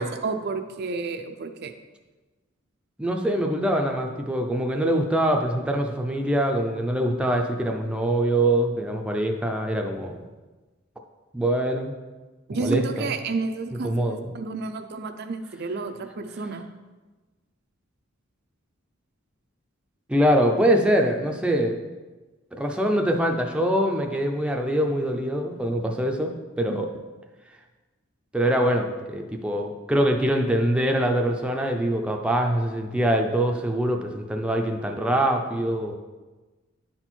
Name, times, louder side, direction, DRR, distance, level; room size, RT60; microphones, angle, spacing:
voice 1, 0.0-1.7 12.5-16.7 26.7-26.8, right 4 dB, 50° right, 7 dB, 0.5 m, -31 dB
voice 2, 3.0-10.1 11.3-11.9 12.5-13.1 13.8-14.3 20.1-21.8 22.5-26.9 28.3-35.9, right 1 dB, 5° right, 2 dB, 0.5 m, -24 dB
9.7 x 4.4 x 4.4 m, 1.2 s
head